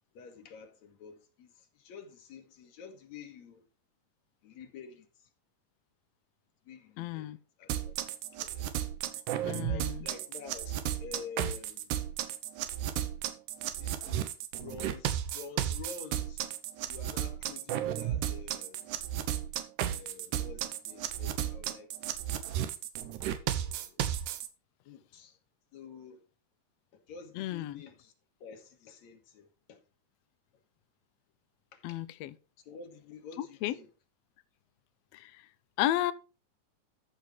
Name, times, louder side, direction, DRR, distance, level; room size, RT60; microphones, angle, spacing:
voice 1, 0.1-3.6 4.4-5.3 6.7-8.0 8.3-8.7 9.7-10.7 11.0-12.1 13.8-16.5 16.9-18.9 19.8-21.9 23.4-24.1 24.8-25.4 25.7-26.2 26.9-28.1 28.4-29.8 31.7-32.0 32.7-33.9, left 5 dB, 65° left, 2.8 m, -49 dB
voice 2, 7.0-7.4 9.4-10.1 27.3-27.8 31.8-32.3 33.4-33.7 35.1-35.5 35.8-36.1, left 14 dB, 85° left, 1.4 m, -33 dB
sound 1, 7.7-24.5, right 11 dB, 80° right, 2.3 m, -34 dB
13.5 x 5.6 x 4.2 m
omnidirectional pair, 3.5 m